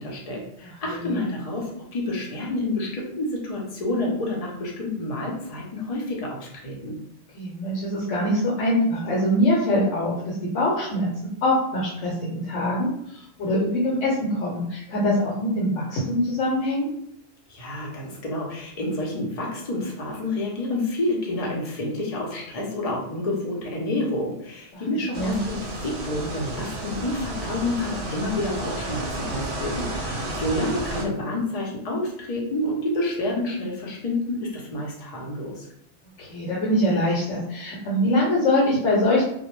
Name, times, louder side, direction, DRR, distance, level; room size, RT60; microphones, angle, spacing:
voice 1, 0.0-7.0 17.5-35.7, left 1 dB, 40° left, -2 dB, 0.6 m, -29 dB
voice 2, 0.6-1.2 7.3-11.1 11.4-16.9 24.7-24.8 25.2-25.4 30.6-30.7 36.2-39.2, left 1 dB, 85° left, -4 dB, 1.0 m, -23 dB
sound 1, 25.1-31.0, right 2 dB, 70° right, 0.8 m, -32 dB
2.1 x 2.1 x 3.0 m, 0.75 s
omnidirectional pair, 1.2 m